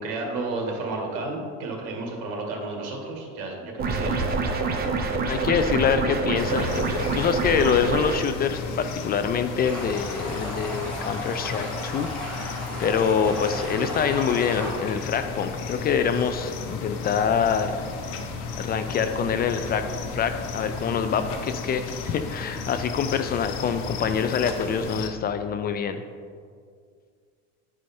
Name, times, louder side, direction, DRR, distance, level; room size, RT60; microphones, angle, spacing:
voice 1, 0.0-4.5, right 2 dB, 80° right, 1 dB, 1.9 m, -32 dB
sound 1, 3.8-8.2, right 3 dB, 30° right, 0.8 m, -26 dB
voice 2, 5.3-17.8 18.5-19.8 20.1-26.0, left 7 dB, 30° left, 9 dB, 0.4 m, -25 dB
sound 2, 6.3-25.1, left 4 dB, 75° left, 1.0 m, -34 dB
Stream, 9.6-14.7, left 1 dB, 5° left, 2.2 m, -35 dB
10.5 x 4.8 x 4.3 m, 2.1 s
cardioid pair, 130°, 31 cm